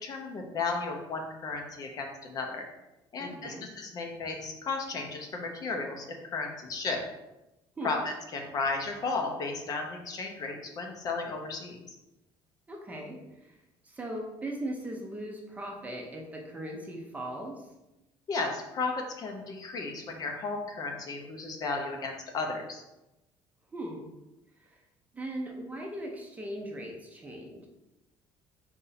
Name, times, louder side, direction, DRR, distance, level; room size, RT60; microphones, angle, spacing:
voice 1, 0.0-2.6 3.1-7.0 7.8-12.0 18.3-22.8, left 3 dB, 40° left, 2 dB, 0.6 m, -34 dB
voice 2, 3.2-3.7 7.8-7.9 12.7-13.5 13.8-17.6 23.7-24.1 25.1-27.7, right 1 dB, 15° right, 0 dB, 0.6 m, -39 dB
4.3 x 2.6 x 3.9 m, 0.96 s
cardioid pair, 145°, 10 cm